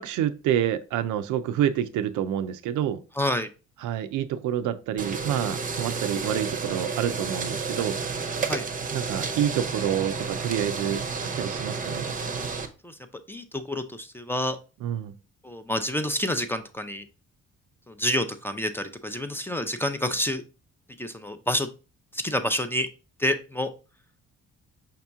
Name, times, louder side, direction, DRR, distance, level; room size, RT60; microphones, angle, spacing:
voice 1, 0.0-3.0 3.8-8.0 8.9-12.1 14.8-15.1, right 10 dB, 85° right, 0.5 m, -28 dB
voice 2, 3.2-3.5 8.5-8.6 12.8-13.0 13.3-14.6 15.4-17.1 17.9-20.4 21.0-21.7 22.1-22.9 23.2-23.7, left 1 dB, 10° left, 0.4 m, -28 dB
sound 1, 5.0-12.7, right 5 dB, 30° right, 0.7 m, -31 dB
5.3 x 2.9 x 3.4 m
cardioid pair, 90°, 30 cm